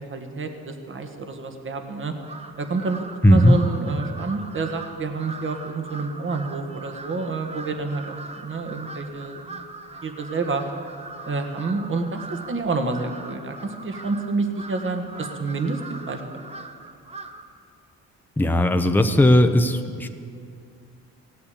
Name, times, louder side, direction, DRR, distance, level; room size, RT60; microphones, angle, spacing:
voice 1, 0.1-2.1 2.6-9.6 10.0-10.6 11.3-12.2 12.5-15.8 16.1-16.4, right 3 dB, 40° right, 5 dB, 1.7 m, -28 dB
Crow, 2.2-17.6, right 3 dB, 20° right, 0.9 m, -41 dB
voice 2, 3.2-3.6 18.4-20.1, left 1 dB, 5° left, 7 dB, 0.8 m, -17 dB
16.5 x 8.4 x 8.6 m, 2.3 s
cardioid pair, 90°, 30 cm